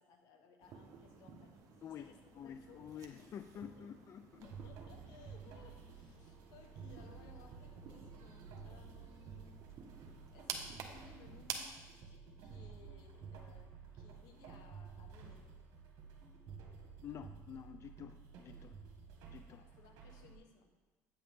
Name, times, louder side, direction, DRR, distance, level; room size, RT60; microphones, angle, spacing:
voice 1, 0.0-1.5 2.0-3.6 4.4-9.6 10.3-15.4 19.5-20.7, left 4 dB, 80° left, 5 dB, 1.2 m, -62 dB
sound 1, 0.6-11.6, right 6 dB, 60° right, 1.1 m, -51 dB
voice 2, 1.8-4.5 17.0-18.8 19.3-19.6, left 9 dB, 45° left, 10 dB, 0.3 m, -49 dB
sound 2, 4.4-20.3, right 5 dB, 75° right, 1.7 m, -53 dB
8.8 x 8.5 x 3.6 m, 1.3 s
cardioid pair, 105°, 7 cm